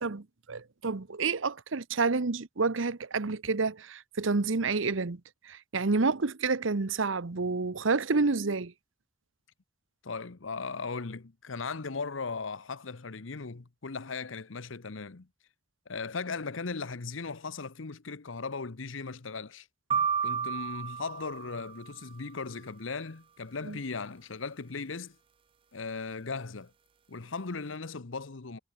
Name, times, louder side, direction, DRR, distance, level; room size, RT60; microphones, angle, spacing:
voice 1, 0.0-5.2 5.4-8.7 23.6-23.8, right 4 dB, 90° right, 0.9 m, -29 dB
voice 2, 10.0-15.3 15.9-19.7 20.2-25.2 25.7-26.7 27.1-28.6, left 4 dB, 85° left, 1.0 m, -37 dB
sound 1, 19.9-22.0, right 7 dB, 25° right, 0.4 m, -32 dB
head